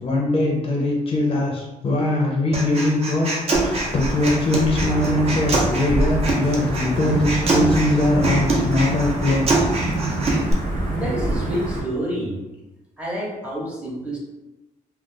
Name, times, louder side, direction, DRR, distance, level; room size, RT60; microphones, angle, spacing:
voice 1, 0.0-9.7, left 2 dB, 40° left, -2 dB, 0.5 m, -22 dB
Human voice, 2.5-10.5, right 2 dB, 45° right, 0.7 m, -24 dB
Wind / Thunder / Rain, 3.5-11.8, right 1 dB, 80° right, 0.8 m, -26 dB
voice 2, 11.0-12.4 13.0-14.2, equal, 10° right, -4 dB, 0.8 m, -28 dB
2.3 x 2.3 x 3.7 m, 1.0 s
cardioid pair, 140°, 14 cm